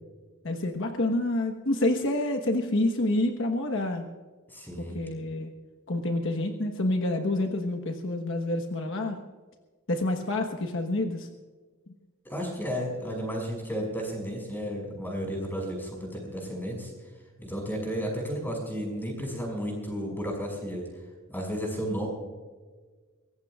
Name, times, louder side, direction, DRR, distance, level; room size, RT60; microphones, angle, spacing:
voice 1, 0.4-4.0 4.9-5.5 5.9-9.2 9.9-11.3, left 1 dB, 60° left, 4 dB, 1.3 m, -28 dB
voice 2, 4.5-5.0 12.2-16.9 17.4-20.9 21.3-22.1, equal, 10° left, 1 dB, 5.9 m, -33 dB
23.5 x 18.0 x 2.4 m, 1.4 s
head